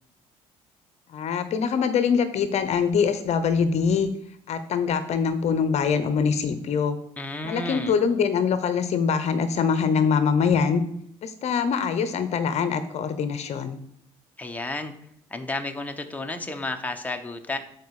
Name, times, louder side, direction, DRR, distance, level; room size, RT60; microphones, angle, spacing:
voice 1, 1.1-4.1 4.5-7.0 7.4-10.8 11.2-13.8, left 6 dB, 55° left, 11 dB, 0.8 m, -23 dB
voice 2, 7.2-7.9 14.4-14.9 15.3-17.6, left 2 dB, 10° left, 5 dB, 1.1 m, -32 dB
9.3 x 4.5 x 4.8 m, 0.70 s
supercardioid pair, 70°, 13 cm